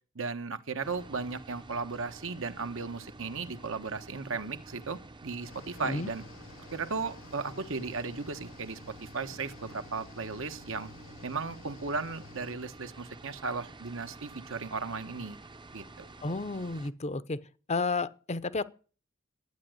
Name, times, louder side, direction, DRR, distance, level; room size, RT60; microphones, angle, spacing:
voice 1, 0.1-6.2 6.7-10.9 11.2-15.4 15.7-16.1, right 4 dB, 65° right, 1.2 m, -36 dB
sound 1, 0.8-16.9, right 2 dB, 20° right, 0.8 m, -50 dB
Cricket / Waves surf, 5.4-12.6, left 4 dB, 65° left, 1.2 m, -53 dB
voice 2, 5.8-6.1 16.2-17.4 17.7-18.6, left 3 dB, 30° left, 0.7 m, -32 dB
12.5 x 9.0 x 7.8 m
head